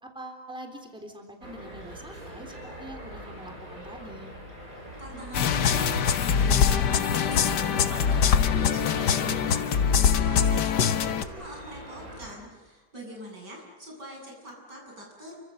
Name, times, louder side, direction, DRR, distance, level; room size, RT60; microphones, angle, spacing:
voice 1, 0.0-4.3, right 1 dB, 5° right, 3 dB, 3.5 m, -44 dB
sound 1, 1.4-12.4, equal, 55° right, 6.7 m, -42 dB
voice 2, 5.0-15.4, equal, 80° right, -1 dB, 8.9 m, -43 dB
sound 2, 5.3-11.2, left 7 dB, 75° left, 1.7 m, -23 dB
29.5 x 25.0 x 6.7 m, 1.4 s
omnidirectional pair, 1.8 m